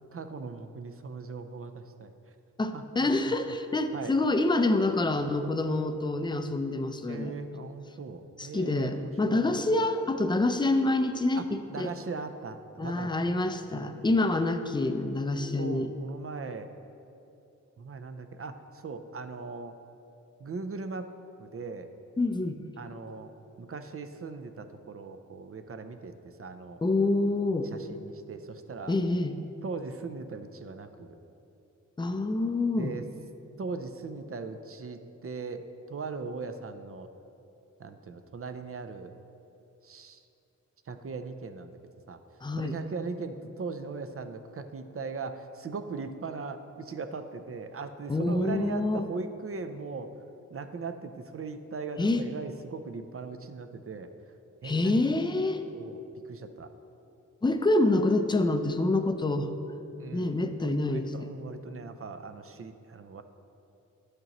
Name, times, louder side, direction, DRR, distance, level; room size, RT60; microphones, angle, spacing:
voice 1, 0.1-2.1 2.7-3.5 3.9-4.1 5.6-5.7 7.1-9.6 11.3-11.4 11.7-13.3 13.7-14.1 15.6-16.7 17.8-19.8 20.4-21.1 21.4-21.9 22.8-23.3 23.6-26.8 27.6-29.0 29.6-31.2 32.7-33.1 33.6-37.1 37.8-39.1 39.8-40.2 40.9-41.7 42.1-42.2 42.6-50.1 50.5-54.1 54.6-55.0 55.7-56.7 60.0-60.4 60.6-63.2, right 4 dB, 45° right, 9 dB, 0.5 m, -39 dB
voice 2, 2.6-7.3 8.4-11.4 11.8-11.9 12.8-15.9 22.2-22.6 26.8-27.7 28.9-29.4 32.0-33.0 42.4-42.7 48.1-49.0 52.0-52.3 54.6-55.6 57.4-59.5 60.1-61.1, left 2 dB, 15° left, 8 dB, 0.4 m, -27 dB
10.5 x 6.5 x 3.0 m, 2.8 s
wide cardioid pair, 80°, 31 cm